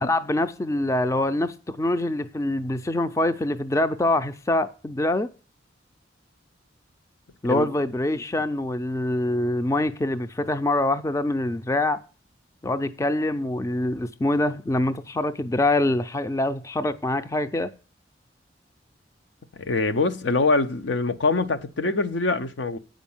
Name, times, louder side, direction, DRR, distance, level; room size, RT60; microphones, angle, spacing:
voice 1, 0.0-5.3 7.4-12.0 12.6-17.7, left 1 dB, 15° left, 0.4 m, -25 dB
voice 2, 19.5-22.8, left 3 dB, 80° left, 0.7 m, -24 dB
8.5 x 5.2 x 7.1 m
head